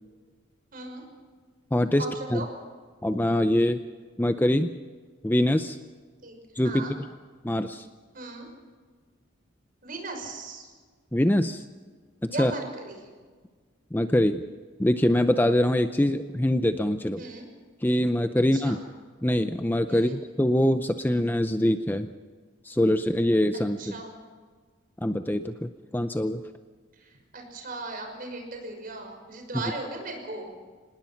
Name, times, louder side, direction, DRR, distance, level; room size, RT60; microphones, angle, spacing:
voice 1, 0.7-1.0 2.0-2.5 6.2-6.4 6.6-6.9 8.1-8.5 9.8-10.7 12.3-13.0 17.2-17.5 18.5-18.8 19.9-20.2 23.8-24.1 27.0-30.5, right 2 dB, 45° right, 3 dB, 5.8 m, -37 dB
voice 2, 1.7-2.0 2.3-2.4 3.0-3.8 4.2-4.7 5.2-5.8 6.6-6.9 7.4-7.9 11.1-11.6 12.2-12.5 13.9-14.4 14.8-17.2 17.8-18.8 19.2-22.1 22.6-23.9 25.0-26.4, left 1 dB, 10° left, 9 dB, 0.6 m, -24 dB
26.0 x 19.5 x 5.8 m, 1.5 s
head